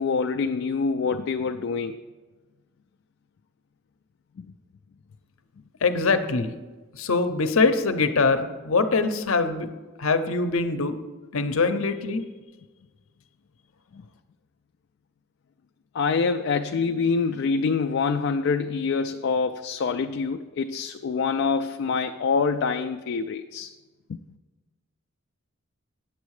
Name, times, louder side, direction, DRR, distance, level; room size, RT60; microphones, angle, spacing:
voice 1, 0.0-2.0 4.4-4.5 15.9-23.7, left 5 dB, 55° left, 0.3 m, -25 dB
voice 2, 5.8-6.5 6.9-9.7 10.0-11.0 11.3-12.2, left 4 dB, 75° left, 0.7 m, -23 dB
9.2 x 7.2 x 4.8 m
head